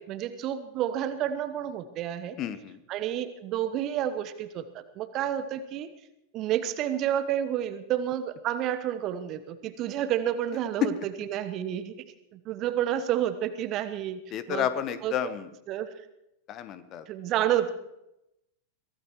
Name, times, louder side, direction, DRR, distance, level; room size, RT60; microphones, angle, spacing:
voice 1, 0.0-2.4 2.9-5.9 6.3-11.9 12.3-14.2 14.5-14.7 15.0-15.1 15.7-15.9 17.1-17.7, right 11 dB, 35° right, 12 dB, 1.1 m, -30 dB
voice 2, 2.4-2.8 14.3-15.5 16.5-17.0, left 9 dB, 35° left, 13 dB, 1.0 m, -31 dB
23.5 x 16.5 x 3.1 m, 0.87 s
figure-of-eight pair, 90°, 0 cm